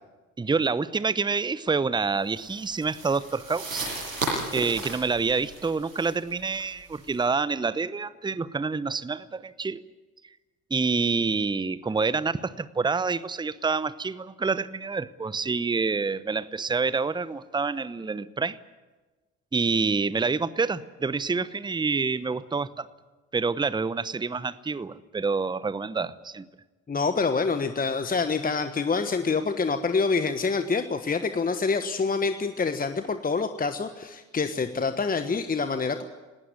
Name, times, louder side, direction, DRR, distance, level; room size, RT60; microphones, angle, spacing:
voice 1, 0.4-3.9 4.5-9.8 10.7-18.6 19.5-22.9 23.3-26.5, right 4 dB, 10° right, 18 dB, 0.8 m, -27 dB
sound 1, 2.3-7.2, right 2 dB, 90° right, 8.0 m, -35 dB
voice 2, 26.9-36.0, left 4 dB, 20° left, 9 dB, 1.2 m, -26 dB
19.0 x 19.0 x 9.6 m, 1.2 s
figure-of-eight pair, 50°, 39 cm